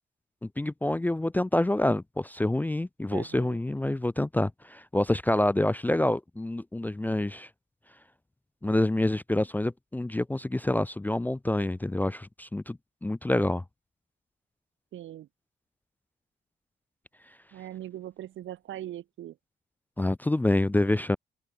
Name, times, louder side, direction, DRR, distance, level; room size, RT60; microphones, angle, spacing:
voice 1, 0.4-7.5 8.6-13.6 20.0-21.2, left 1 dB, 10° left, 0.5 m, -27 dB
voice 2, 3.1-3.6 14.9-15.3 17.5-19.4, right 12 dB, 75° right, 2.3 m, -41 dB
cardioid pair, 90°, 20 cm